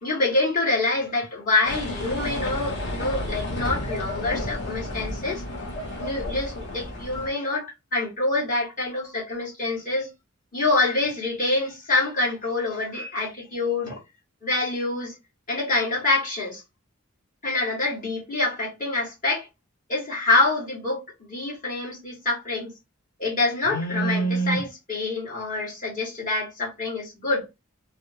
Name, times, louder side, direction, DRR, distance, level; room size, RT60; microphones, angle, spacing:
voice 1, 0.0-5.4 6.0-10.1 10.5-14.0 14.4-15.1 15.5-16.6 17.4-19.5 19.9-22.7 23.2-27.5, left 2 dB, 40° left, 1.9 m, -26 dB
sound 1, 1.6-7.3, left 1 dB, 55° left, 1.0 m, -32 dB
3.3 x 2.3 x 2.8 m
head